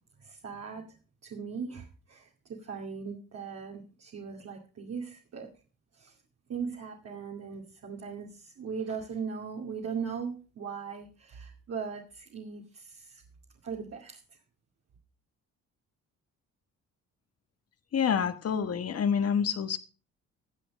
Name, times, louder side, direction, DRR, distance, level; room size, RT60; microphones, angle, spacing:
voice 1, 0.2-0.8 1.2-2.3 2.6-5.5 5.9-6.1 6.5-13.2 13.6-14.2, right 6 dB, 55° right, -1 dB, 2.4 m, -39 dB
voice 2, 17.9-19.8, left 7 dB, 55° left, 10 dB, 1.5 m, -27 dB
15.5 x 8.0 x 5.2 m, 0.36 s
cardioid pair, 90°, 30 cm